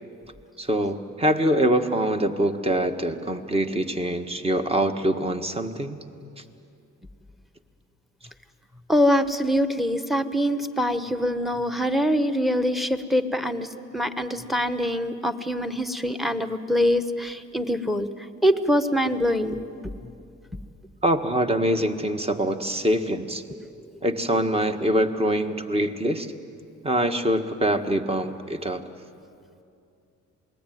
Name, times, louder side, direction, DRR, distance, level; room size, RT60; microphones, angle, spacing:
voice 1, 0.6-6.0 21.0-23.4 24.0-26.3 26.8-28.8, right 1 dB, 20° right, 6 dB, 1.7 m, -24 dB
voice 2, 8.9-13.7 13.9-18.1 18.4-19.6, equal, ahead, 10 dB, 1.3 m, -24 dB
27.0 x 20.5 x 9.4 m, 2.5 s
cardioid pair, 90°, 30 cm